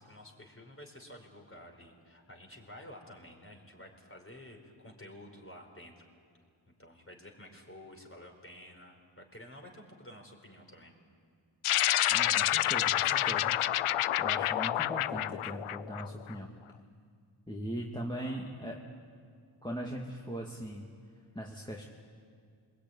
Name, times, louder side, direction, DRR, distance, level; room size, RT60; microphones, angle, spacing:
voice 1, 0.0-6.1 6.7-10.9 17.7-17.9 18.1-18.8, left 1 dB, 25° left, 2 dB, 4.9 m, -51 dB
sound 1, 11.6-16.3, left 13 dB, 75° left, 0.6 m, -28 dB
voice 2, 12.1-13.6 14.2-16.5 17.5-18.7 19.6-20.8 21.3-21.8, equal, 10° left, -1 dB, 2.3 m, -40 dB
23.5 x 20.5 x 9.7 m, 2.2 s
cardioid pair, 55°, 50 cm